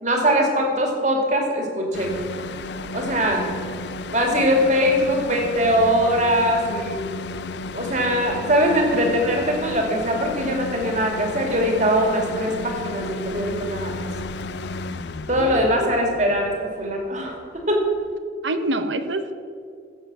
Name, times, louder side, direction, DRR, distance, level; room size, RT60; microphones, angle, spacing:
voice 1, 0.0-2.1 2.9-3.5 4.1-7.0 7.7-14.1 15.3-17.8, equal, 40° right, 1 dB, 2.3 m, -21 dB
sound 1, 1.9-18.1, left 3 dB, 70° left, 0.5 m, -33 dB
voice 2, 15.4-15.9 18.4-19.3, right 2 dB, 85° right, 9 dB, 1.0 m, -26 dB
15.0 x 7.8 x 6.0 m, 2.2 s
head